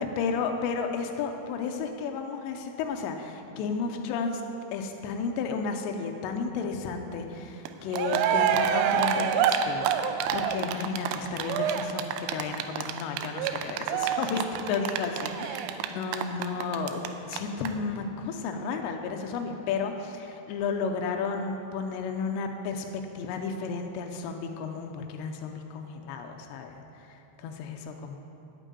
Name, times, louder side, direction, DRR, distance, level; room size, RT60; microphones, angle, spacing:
voice 1, 0.2-4.4 4.7-28.2, left 5 dB, 85° left, 4 dB, 2.5 m, -33 dB
Cheering, 7.7-7.8 7.9-17.1 17.3-17.4 17.6-17.7, right 8 dB, 85° right, 3.2 m, -27 dB
9.0 x 8.4 x 8.7 m, 3.0 s
omnidirectional pair, 5.7 m